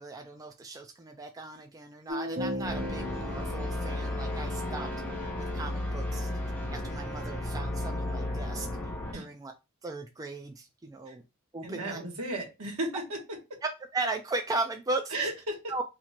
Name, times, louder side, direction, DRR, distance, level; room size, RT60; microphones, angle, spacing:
voice 1, 0.0-4.9 5.4-6.3 6.7-8.7 9.1-9.5 9.8-11.2 11.5-12.0 13.9-15.3 15.7-15.8, right 2 dB, 15° right, 4 dB, 0.3 m, -37 dB
Sad Piano Love Story, 2.1-7.4, equal, 40° right, 0.8 m, -39 dB
sound 1, 2.6-9.1, left 1 dB, 10° left, 0.8 m, -34 dB
voice 2, 11.6-13.2 15.1-15.7, right 1 dB, 75° right, 0 dB, 1.4 m, -34 dB
3.0 x 2.4 x 4.2 m, 0.26 s
head